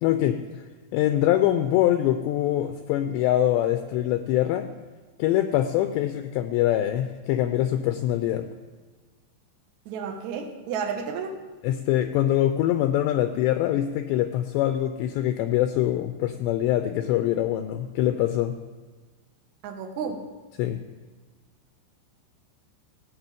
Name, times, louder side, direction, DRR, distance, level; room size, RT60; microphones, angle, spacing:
voice 1, 0.0-0.4 0.9-4.7 5.2-8.5 11.6-18.6 20.6-20.8, left 12 dB, 85° left, 8 dB, 2.5 m, -24 dB
voice 2, 9.8-11.4 19.6-20.3, right 6 dB, 80° right, 4 dB, 1.7 m, -32 dB
16.5 x 6.3 x 9.0 m, 1.4 s
omnidirectional pair, 5.6 m